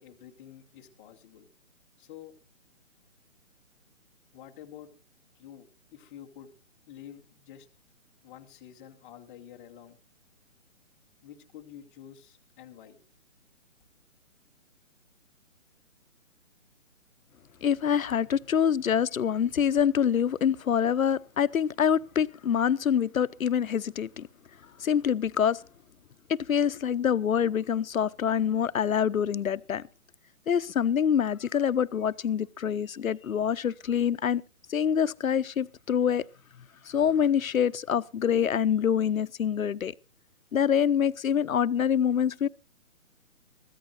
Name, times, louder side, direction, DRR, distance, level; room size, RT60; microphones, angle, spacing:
voice 1, 0.0-1.5 2.0-2.3 4.3-4.9 5.4-6.5 6.9-7.7 8.2-10.0 11.2-13.0, left 10 dB, 10° left, 0.6 m, -49 dB
voice 2, 17.6-24.3 24.8-25.6 26.3-29.8 30.5-34.4 34.7-36.2 36.9-39.9 40.5-42.5, left 8 dB, 85° left, 0.8 m, -25 dB
23.0 x 14.5 x 2.5 m
hypercardioid pair, 150°, 40 cm